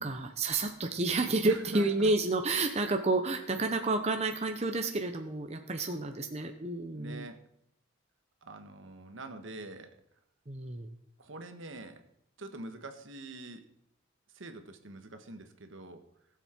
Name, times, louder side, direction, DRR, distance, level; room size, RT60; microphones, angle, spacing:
voice 1, 0.0-7.3 10.5-10.9, right 2 dB, 30° right, 5 dB, 0.8 m, -30 dB
voice 2, 1.5-2.1 6.9-7.4 8.4-9.9 11.2-12.0 12.4-13.6 14.3-16.0, right 2 dB, 70° right, 7 dB, 1.3 m, -45 dB
18.5 x 7.4 x 4.4 m, 0.74 s
head